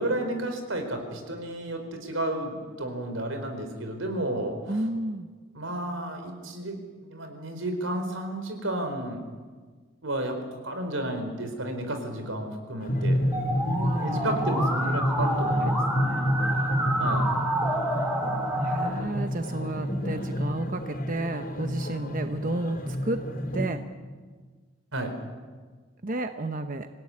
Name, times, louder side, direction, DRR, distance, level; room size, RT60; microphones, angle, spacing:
voice 1, 0.0-4.7 5.5-6.8 7.1-9.2 10.0-10.4 10.6-13.2 14.0-15.8 17.0-17.3 24.9-25.1, right 1 dB, 85° right, 6 dB, 4.6 m, -32 dB
voice 2, 4.7-5.3 13.7-15.0 15.6-15.7 16.0-16.4 18.5-23.3 23.5-23.8 26.0-26.9, right 2 dB, 45° right, 7 dB, 0.9 m, -32 dB
sound 1, 12.8-23.7, equal, 45° left, 4.0 m, -29 dB
Musical instrument, 13.3-18.9, right 1 dB, 10° right, 5.6 m, -29 dB
26.0 x 17.0 x 9.8 m, 1.5 s
head